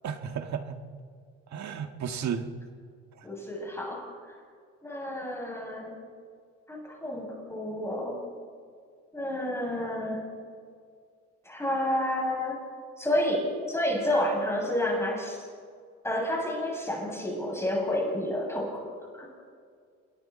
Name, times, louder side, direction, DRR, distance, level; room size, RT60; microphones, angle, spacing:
voice 1, 0.0-0.8 1.5-2.5, right 7 dB, 65° right, 7 dB, 1.8 m, -33 dB
voice 2, 3.2-4.4 4.8-6.0 6.7-8.2 9.1-10.3 11.4-12.6 13.0-15.5 16.0-18.9 19.1-19.3, left 1 dB, 10° left, -3 dB, 7.3 m, -30 dB
28.0 x 22.5 x 4.3 m, 2.1 s
cardioid pair, 90°, 30 cm